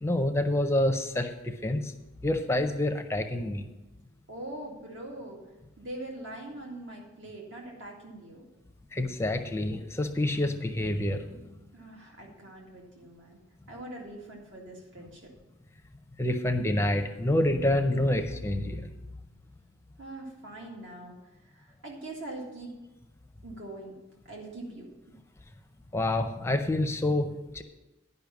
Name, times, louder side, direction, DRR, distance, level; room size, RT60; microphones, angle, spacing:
voice 1, 0.0-1.9 2.2-3.7 8.9-11.5 16.2-18.9 25.9-27.6, left 1 dB, 15° left, 7 dB, 0.5 m, -27 dB
voice 2, 4.3-5.4 5.8-8.4 11.7-13.4 13.7-15.3 20.0-21.1 21.4-22.7 23.4-24.0 24.3-24.9, right 1 dB, 70° right, -1 dB, 2.0 m, -42 dB
10.5 x 5.5 x 7.0 m, 1.0 s
head